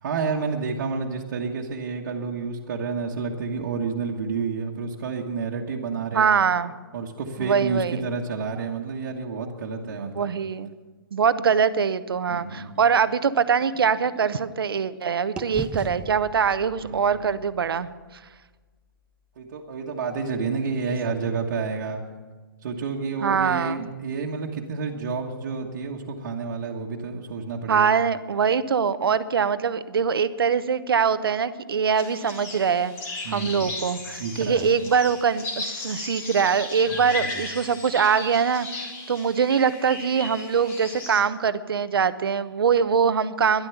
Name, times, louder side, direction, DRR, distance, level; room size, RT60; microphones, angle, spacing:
voice 1, 0.0-6.3 6.9-10.3 12.3-12.7 16.8-17.4 19.4-22.0 22.6-27.9 33.2-33.7 34.2-34.7 36.9-37.3, right 5 dB, 50° right, -3 dB, 1.5 m, -30 dB
voice 2, 6.1-6.7 7.4-8.0 9.9-10.7 11.1-17.9 20.9-21.0 23.2-23.8 27.7-32.9 33.3-43.7, right 6 dB, 80° right, 13 dB, 0.8 m, -23 dB
sound 1, 12.7-15.0 15.4-19.3, right 4 dB, 10° right, 0.6 m, -41 dB
sound 2, 31.9-41.2, left 3 dB, 20° left, 1.9 m, -36 dB
13.0 x 11.5 x 7.1 m, 1.3 s
hypercardioid pair, 160°, 12 cm